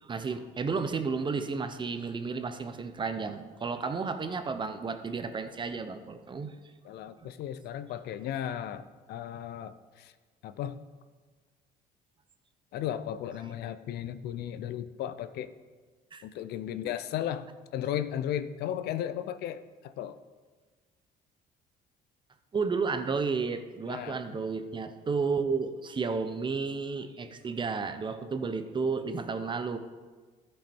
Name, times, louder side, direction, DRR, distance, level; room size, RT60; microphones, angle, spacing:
voice 1, 0.0-6.5 7.2-7.3 16.1-16.2 22.5-29.8, right 4 dB, 30° right, 9 dB, 0.7 m, -32 dB
voice 2, 6.8-10.1 10.4-10.8 12.7-15.5 16.2-20.2 23.9-24.2, left 10 dB, 75° left, 12 dB, 0.5 m, -35 dB
13.5 x 5.6 x 4.3 m, 1.4 s
cardioid pair, 110°, 17 cm